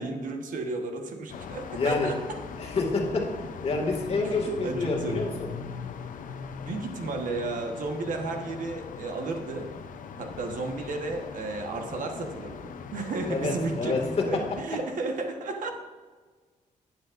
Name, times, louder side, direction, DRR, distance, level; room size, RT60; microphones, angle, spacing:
voice 1, 0.0-2.2 4.2-5.4 6.7-9.7 10.2-15.7, right 3 dB, 80° right, 4 dB, 1.3 m, -33 dB
sound 1, 1.3-14.6, left 6 dB, 80° left, 0.6 m, -40 dB
voice 2, 1.7-2.2 2.6-3.3 3.6-5.5 13.3-14.4, left 3 dB, 50° left, 0 dB, 2.1 m, -28 dB
11.5 x 9.7 x 2.6 m, 1.4 s
wide cardioid pair, 125°, 13 cm